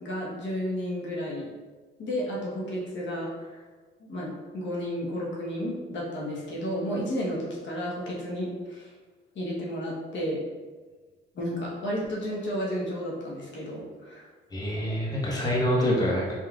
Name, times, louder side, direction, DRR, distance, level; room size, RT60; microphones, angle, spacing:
voice 1, 0.0-1.5 2.0-3.6 4.1-8.9 9.3-10.4 11.3-14.3, equal, 65° left, -4 dB, 1.1 m, -32 dB
voice 2, 14.5-16.3, equal, 20° left, -4 dB, 1.1 m, -26 dB
4.3 x 3.7 x 2.4 m, 1.4 s
cardioid pair, 90°, 20 cm